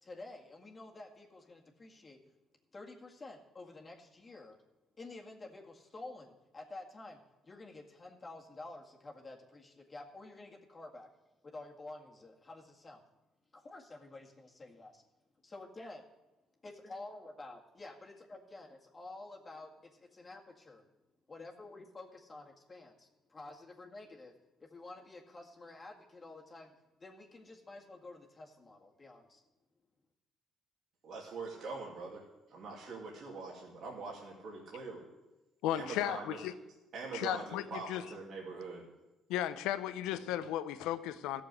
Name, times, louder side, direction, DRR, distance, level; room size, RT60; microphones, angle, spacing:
voice 1, 0.0-2.2 2.7-4.6 5.0-11.1 11.4-13.0 13.5-15.0 15.5-16.0 16.6-20.9 21.3-24.3 24.6-29.4, left 2 dB, 30° left, 0 dB, 1.9 m, -50 dB
voice 2, 31.0-35.1 35.7-36.4 36.9-38.8, right 4 dB, 65° right, -3 dB, 2.8 m, -43 dB
voice 3, 35.6-36.5 37.1-38.0 39.3-41.4, left 12 dB, 85° left, 12 dB, 0.7 m, -35 dB
14.0 x 7.0 x 8.0 m, 1.0 s
supercardioid pair, 75°, 0 cm